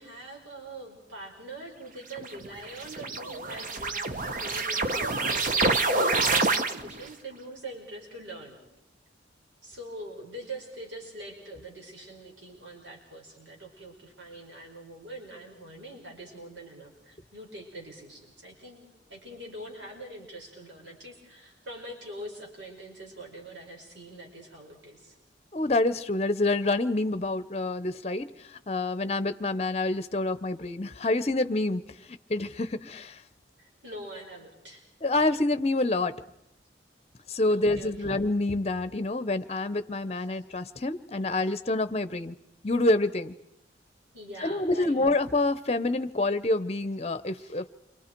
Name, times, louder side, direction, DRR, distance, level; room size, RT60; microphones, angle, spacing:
voice 1, 0.0-8.6 9.6-25.2 33.6-34.8 37.5-38.0 40.1-40.4 41.4-41.5 44.1-45.2 47.4-47.7, right 1 dB, 90° right, 0 dB, 4.8 m, -44 dB
sound 1, 2.1-7.1, right 3 dB, 45° right, 1.0 m, -27 dB
voice 2, 25.5-28.3 28.7-31.8 32.3-33.2 35.0-36.1 37.3-42.3 42.6-43.3 44.4-47.7, left 2 dB, 35° left, 13 dB, 0.7 m, -27 dB
29.0 x 24.0 x 4.5 m, 0.83 s
head